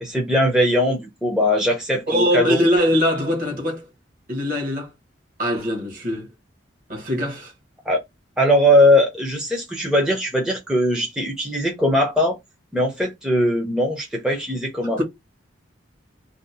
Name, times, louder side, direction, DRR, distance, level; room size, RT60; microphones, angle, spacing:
voice 1, 0.0-2.6 7.9-8.0 8.4-12.4 12.7-15.0, left 1 dB, 5° right, 0.6 m, -20 dB
voice 2, 2.1-3.9 4.3-4.9 5.4-6.3 6.9-7.5 15.0-15.1, equal, 45° right, 1.0 m, -22 dB
2.6 x 2.1 x 4.0 m
head